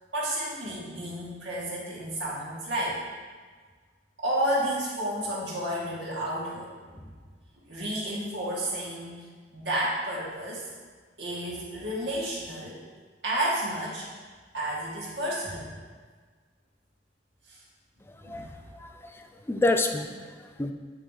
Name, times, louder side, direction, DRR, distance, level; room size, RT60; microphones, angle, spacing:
voice 1, 0.1-3.0 4.2-7.1 7.7-9.2 9.5-10.7 11.2-12.8 13.2-14.1 14.5-15.8 17.5-17.6 18.2-18.6, right 1 dB, 85° right, -6 dB, 1.8 m, -31 dB
voice 2, 18.1-20.7, left 2 dB, 15° left, 5 dB, 0.3 m, -29 dB
8.7 x 2.9 x 3.9 m, 1.5 s
head